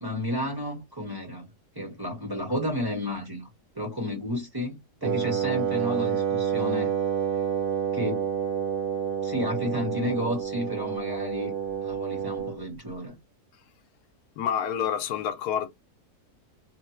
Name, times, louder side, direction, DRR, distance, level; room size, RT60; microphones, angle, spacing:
voice 1, 0.0-1.5 1.7-3.5 3.7-6.9 7.9-8.3 9.2-11.5 11.8-13.2, left 1 dB, 15° right, 1.0 m, -31 dB
Wind instrument woodwind instrument, 5.0-12.6, right 8 dB, 60° right, 0.7 m, -28 dB
voice 2, 14.4-15.7, left 9 dB, 85° left, 1.2 m, -28 dB
2.9 x 2.1 x 3.0 m
omnidirectional pair, 1.7 m